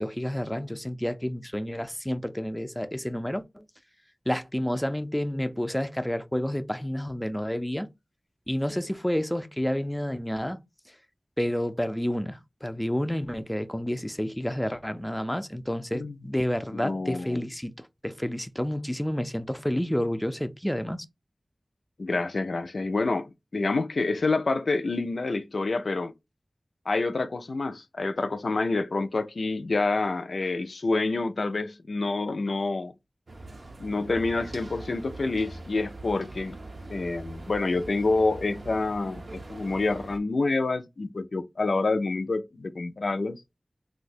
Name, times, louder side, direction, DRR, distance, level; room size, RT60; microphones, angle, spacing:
voice 1, 0.0-3.7 4.3-7.9 8.5-10.6 10.9-11.0 11.4-21.1, equal, 10° left, 0.4 m, -30 dB
voice 2, 16.7-17.4 22.0-26.1 26.9-32.9 33.8-36.6 36.9-43.4, left 3 dB, 90° left, 0.3 m, -27 dB
sound 1, 33.3-40.2, right 2 dB, 70° right, 0.5 m, -42 dB
2.7 x 2.1 x 4.0 m
wide cardioid pair, 65°, 0 cm